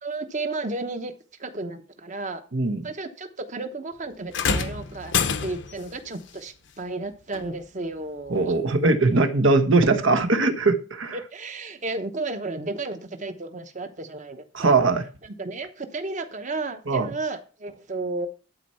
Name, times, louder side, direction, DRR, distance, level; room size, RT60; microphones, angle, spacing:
voice 1, 0.0-1.1 1.4-2.4 2.8-5.1 5.4-8.5 11.1-14.7 15.2-18.3, right 3 dB, 35° right, 1.0 m, -33 dB
voice 2, 2.5-2.8 8.3-11.2 14.5-15.0 16.9-17.1, right 3 dB, 70° right, 1.1 m, -20 dB
sound 1, 4.3-5.9 7.3-7.5 8.4-8.5, left 5 dB, 60° left, 0.8 m, -26 dB
11.5 x 4.5 x 5.6 m
head